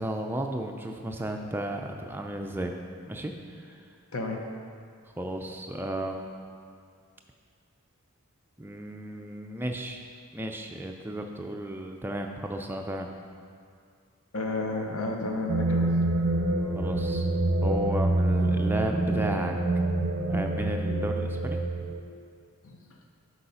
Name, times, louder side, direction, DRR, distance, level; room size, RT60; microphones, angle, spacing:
voice 1, 0.0-2.7 3.1-3.9 5.2-6.3 8.6-10.0 10.3-13.1 16.8-17.3 17.6-19.5 20.3-21.6, right 1 dB, 10° right, 3 dB, 0.4 m, -34 dB
voice 2, 4.1-4.4 14.3-16.0 22.6-22.8, left 2 dB, 70° left, 2 dB, 0.8 m, -31 dB
sound 1, 15.5-22.0, right 2 dB, 55° right, 0.6 m, -26 dB
6.7 x 4.7 x 5.6 m, 2.3 s
head